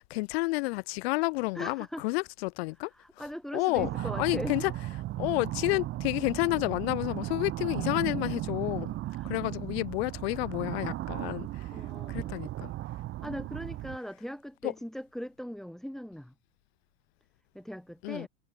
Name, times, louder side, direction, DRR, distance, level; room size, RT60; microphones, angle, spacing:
voice 1, 0.0-2.9 3.5-3.9 4.2-4.6 5.2-8.9 9.2-11.5 12.1-12.7 18.0-18.3, left 24 dB, 55° left, 1.1 m, -30 dB
voice 2, 1.5-2.1 2.8-4.7 9.1-9.3 11.7-12.4 13.2-16.3 17.5-18.3, equal, ahead, 2.9 m, -40 dB
sound 1, 3.8-14.0, right 15 dB, 35° right, 2.5 m, -36 dB
supercardioid pair, 135°, 36 cm